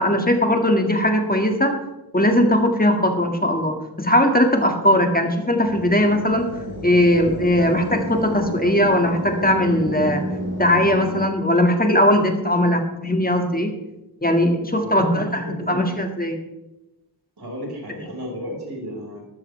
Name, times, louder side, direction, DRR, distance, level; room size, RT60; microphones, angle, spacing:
voice 1, 0.0-1.7 2.1-6.5 6.8-10.2 10.6-13.7 14.2-16.4, left 1 dB, 20° left, 4 dB, 1.9 m, -19 dB
sound 1, 5.6-11.3, equal, 55° right, 5.4 m, -30 dB
voice 2, 14.8-15.8 17.4-19.3, equal, 75° right, -2 dB, 4.9 m, -33 dB
13.5 x 12.0 x 3.3 m, 0.96 s
wide cardioid pair, 50°, 39 cm